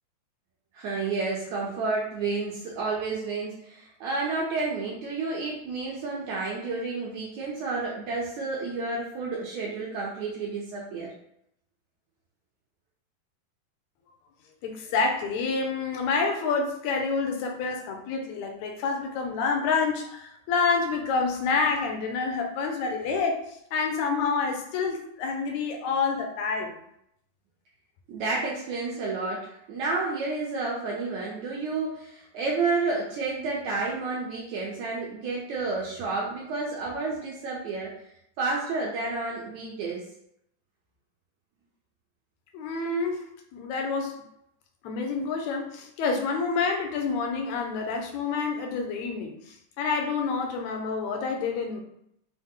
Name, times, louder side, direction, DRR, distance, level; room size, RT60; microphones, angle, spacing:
voice 1, 0.7-11.1 28.1-37.9 38.4-40.1, right 3 dB, 75° right, -4 dB, 1.8 m, -30 dB
voice 2, 14.6-23.4 23.7-26.8 42.5-43.3 43.5-44.2 44.8-51.8, left 4 dB, 80° left, 3 dB, 1.6 m, -28 dB
5.6 x 2.0 x 3.6 m, 0.75 s
omnidirectional pair, 3.8 m